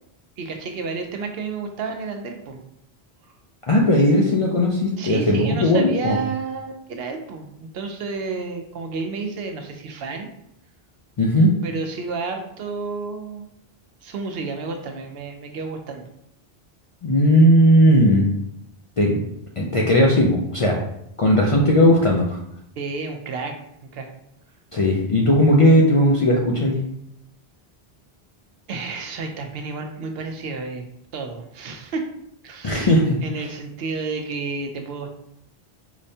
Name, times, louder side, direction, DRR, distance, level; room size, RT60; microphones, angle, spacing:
voice 1, 0.4-2.6 5.0-10.3 11.6-13.5 14.0-16.1 22.8-24.1 28.7-30.8 31.1-32.1 32.4-32.9 33.2-35.1, right 4 dB, 75° right, 4 dB, 0.8 m, -31 dB
voice 2, 3.7-6.2 11.2-11.5 17.0-18.3 19.0-19.2 19.6-20.7 21.2-22.3 24.7-26.7 32.6-33.1, equal, 50° left, -2 dB, 0.4 m, -17 dB
4.8 x 2.1 x 2.6 m, 0.77 s
omnidirectional pair, 1.0 m